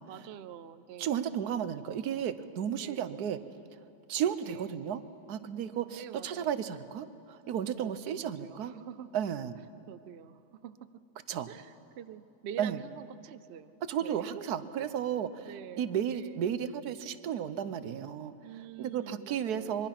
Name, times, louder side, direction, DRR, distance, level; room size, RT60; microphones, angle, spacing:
voice 1, 0.1-1.3 2.8-3.3 4.2-4.8 5.9-6.6 7.8-7.9 8.2-9.1 9.9-11.0 11.5-13.7 14.0-14.3 15.4-16.5 18.4-19.9, right 9 dB, 60° right, 13 dB, 0.7 m, -46 dB
voice 2, 1.0-3.4 4.1-5.0 5.3-8.7 9.1-9.5 11.3-11.5 12.6-12.8 13.8-15.5 15.8-18.3 18.8-19.9, right 9 dB, 80° right, 13 dB, 1.3 m, -33 dB
25.0 x 22.0 x 5.9 m, 2.8 s
omnidirectional pair, 1.7 m